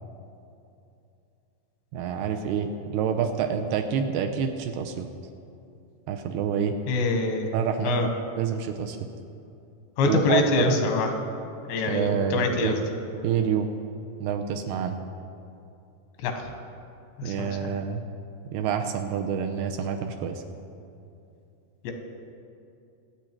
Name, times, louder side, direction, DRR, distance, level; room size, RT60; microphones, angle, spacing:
voice 1, 1.9-5.1 6.1-6.8 7.5-9.0 10.0-10.9 11.9-12.8 13.2-13.7 14.2-15.0 17.2-18.0 18.5-20.4, right 7 dB, 80° right, 5 dB, 2.6 m, -27 dB
voice 2, 6.9-7.5 7.8-8.1 10.0-11.1 11.7-12.8 16.2-16.5 17.2-17.7 21.8-21.9, left 3 dB, 85° left, 5 dB, 3.5 m, -25 dB
24.0 x 8.6 x 4.5 m, 2.6 s
omnidirectional pair, 4.9 m